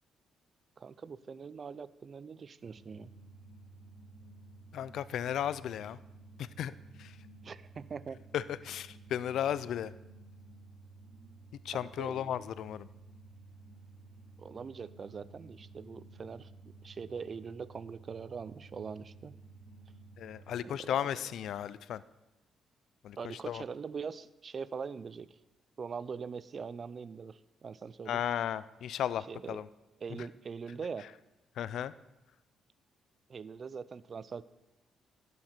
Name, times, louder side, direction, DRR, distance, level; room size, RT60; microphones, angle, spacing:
voice 1, 0.8-3.1 7.4-8.2 11.7-12.3 14.4-16.5 16.8-19.4 20.6-21.0 23.2-25.4 25.8-28.2 29.3-29.6 30.0-31.1 33.3-34.4, right 5 dB, 45° right, 17 dB, 0.4 m, -42 dB
sound 1, 2.6-20.6, right 3 dB, 60° right, 3.5 m, -54 dB
voice 2, 4.7-6.0 6.6-6.7 7.0-7.1 8.3-9.9 11.7-12.9 20.2-22.0 23.0-23.2 23.5-23.6 28.1-29.7 31.6-31.9, left 10 dB, 75° left, 17 dB, 0.4 m, -34 dB
11.5 x 9.5 x 4.4 m, 0.99 s
cardioid pair, 90°, 0 cm